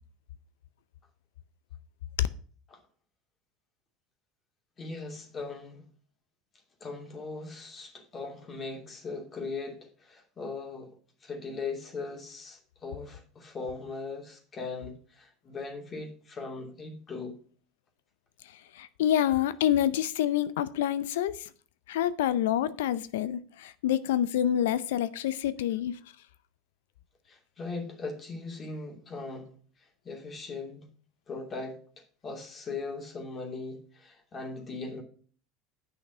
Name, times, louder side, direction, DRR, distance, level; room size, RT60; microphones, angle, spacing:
voice 1, 4.8-5.8 6.8-17.4 27.3-29.5 30.0-30.9 31.3-35.0, left 3 dB, 35° left, 2.7 m, -39 dB
voice 2, 18.8-21.5 21.9-26.0, left 11 dB, 75° left, 0.5 m, -27 dB
8.5 x 5.9 x 5.6 m
hypercardioid pair, 85°, 0 cm